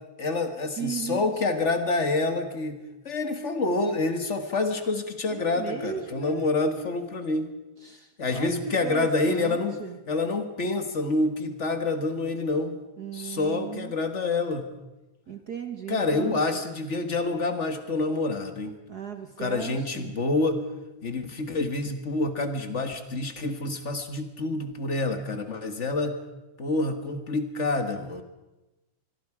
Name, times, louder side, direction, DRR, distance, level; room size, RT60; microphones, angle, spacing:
voice 1, 0.2-7.5 8.2-9.8 10.1-12.8 13.1-14.7 15.9-18.7 19.4-20.6 21.0-26.2 26.6-28.2, left 3 dB, 40° left, 6 dB, 1.0 m, -27 dB
voice 2, 0.8-1.3 5.3-6.5 7.8-10.0 13.0-13.9 15.3-16.4 18.9-20.1, right 7 dB, 65° right, 6 dB, 0.9 m, -36 dB
25.0 x 22.0 x 4.9 m, 1.1 s
omnidirectional pair, 3.4 m